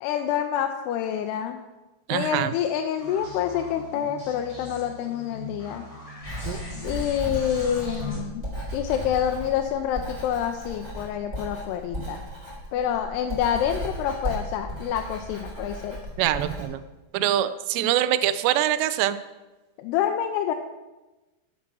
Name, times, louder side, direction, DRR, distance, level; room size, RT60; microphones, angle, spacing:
voice 1, 0.0-1.6 2.1-5.8 6.8-8.4 8.7-12.2 12.7-16.0 19.8-20.5, left 9 dB, 80° left, 4 dB, 2.6 m, -27 dB
voice 2, 2.1-2.5 6.5-6.6 16.2-16.8 17.1-19.2, right 12 dB, 85° right, 12 dB, 2.7 m, -24 dB
sound 1, 3.0-8.2, left 1 dB, 55° left, 0.3 m, -40 dB
Writing, 6.2-16.6, equal, 15° right, 4.1 m, -36 dB
11.5 x 7.4 x 6.1 m, 1.1 s
omnidirectional pair, 4.9 m